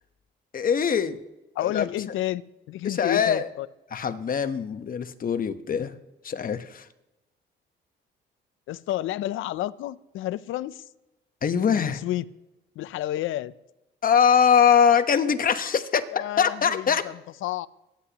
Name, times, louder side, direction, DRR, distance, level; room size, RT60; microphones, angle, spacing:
voice 1, 0.5-1.2 1.6-1.9 2.8-3.5 3.9-5.9 6.2-6.9 11.4-12.0 14.0-16.0 16.4-17.0, left 7 dB, 45° left, 10 dB, 1.1 m, -22 dB
voice 2, 1.6-2.4 2.7-3.7 8.7-10.8 11.7-12.2 12.8-13.5 16.1-16.8 17.4-17.7, left 14 dB, 80° left, 17 dB, 0.5 m, -30 dB
24.0 x 10.0 x 3.0 m, 0.98 s
cardioid pair, 90°, 20 cm